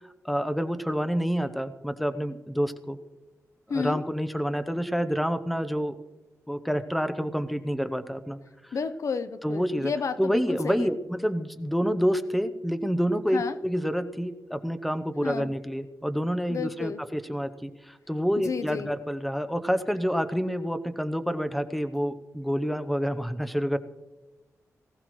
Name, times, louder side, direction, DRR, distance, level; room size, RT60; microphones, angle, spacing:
voice 1, 0.2-3.0 3.7-5.9 6.5-8.4 8.6-8.7 9.4-9.9 10.2-23.8, equal, ahead, 10 dB, 0.8 m, -28 dB
voice 2, 8.7-10.9 13.3-13.6 15.2-15.5 16.5-17.0 18.4-18.9, left 5 dB, 65° left, 12 dB, 0.6 m, -31 dB
19.0 x 15.5 x 3.1 m, 1.1 s
wide cardioid pair, 100°, 6 cm